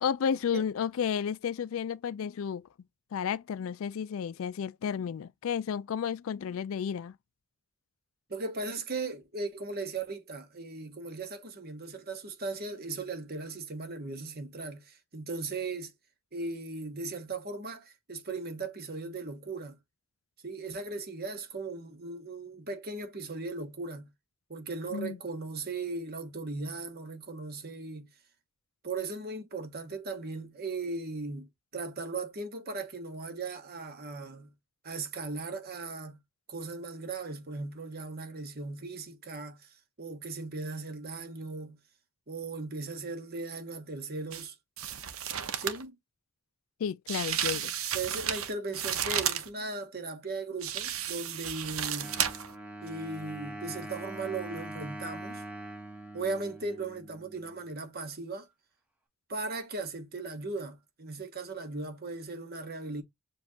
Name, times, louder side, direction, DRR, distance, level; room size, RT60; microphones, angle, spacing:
voice 1, 0.0-2.7 3.1-7.1 24.9-25.2 46.8-47.7, left 7 dB, 65° left, 0.3 m, -32 dB
voice 2, 8.3-15.9 16.3-19.8 20.4-24.1 24.5-28.1 28.8-34.5 34.8-36.2 36.5-41.8 42.3-44.5 45.6-46.0 47.9-52.1 52.8-55.4 56.1-58.5 59.3-63.0, right 3 dB, 45° right, 1.3 m, -38 dB
sound 1, 44.3-44.5 44.8-45.8 47.1-49.5 50.6-52.5 52.9-53.0, right 9 dB, 70° right, 0.8 m, -33 dB
Wind instrument woodwind instrument, 52.0-57.6, right 1 dB, 5° right, 1.4 m, -43 dB
7.1 x 2.4 x 2.8 m
head